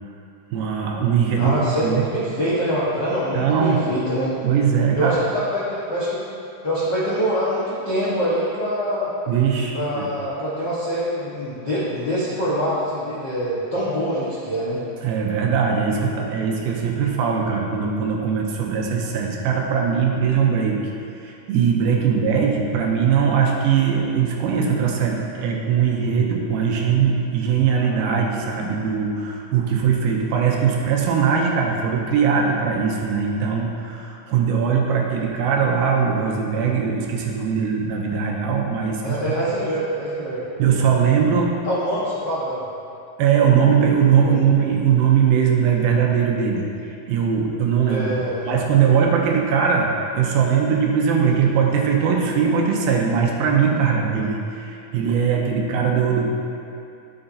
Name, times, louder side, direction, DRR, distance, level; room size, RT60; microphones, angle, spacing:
voice 1, 0.5-2.1 3.3-3.8 4.4-5.1 9.3-10.1 15.0-20.8 21.2-39.2 40.6-41.5 43.2-46.7 47.1-48.0 48.5-56.3, right 7 dB, 80° right, 0 dB, 2.5 m, -20 dB
voice 2, 1.4-4.3 5.0-6.2 6.6-9.1 9.7-14.8 39.0-40.4 41.7-42.6 44.2-44.4 47.9-48.5, equal, 65° left, -10 dB, 1.0 m, -24 dB
12.5 x 7.9 x 2.8 m, 2.6 s
omnidirectional pair, 4.5 m